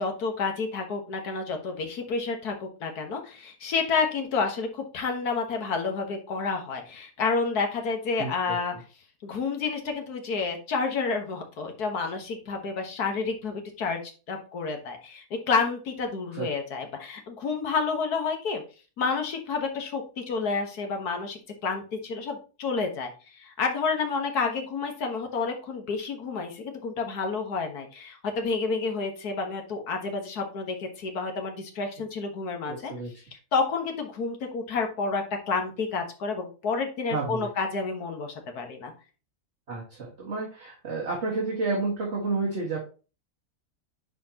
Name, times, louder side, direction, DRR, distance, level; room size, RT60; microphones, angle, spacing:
voice 1, 0.0-8.7 9.2-14.0 14.3-18.6 19.0-23.1 23.4-32.9 33.5-38.9, left 4 dB, 85° left, 4 dB, 1.8 m, -29 dB
voice 2, 8.2-8.6 16.3-16.5 32.7-33.1 37.1-37.5 39.7-42.8, right 3 dB, 45° right, -4 dB, 2.1 m, -30 dB
10.0 x 4.4 x 2.9 m, 0.34 s
omnidirectional pair, 1.6 m